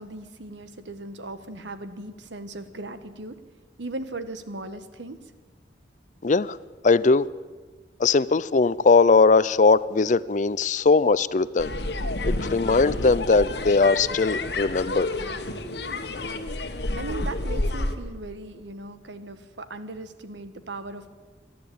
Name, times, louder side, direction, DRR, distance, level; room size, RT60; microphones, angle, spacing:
voice 1, 0.0-3.4 3.8-5.2 17.0-21.1, right 2 dB, 80° right, 11 dB, 1.5 m, -38 dB
voice 2, 6.2-6.6 6.8-7.3 8.0-11.8 12.3-15.1, left 4 dB, 40° left, 18 dB, 0.5 m, -20 dB
sound 1, 11.6-18.0, left 2 dB, 65° left, 1.4 m, -29 dB
27.0 x 11.0 x 8.6 m, 1.4 s
head